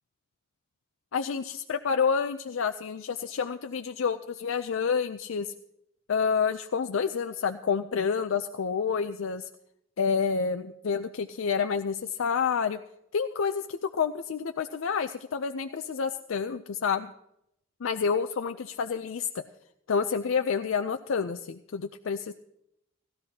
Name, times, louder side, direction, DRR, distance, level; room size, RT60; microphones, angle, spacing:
voice 1, 1.1-5.5 6.1-9.5 10.0-12.8 13.1-17.1 17.8-19.5 19.9-22.3, left 6 dB, 75° left, 8 dB, 0.5 m, -29 dB
18.0 x 13.0 x 2.8 m, 0.79 s
head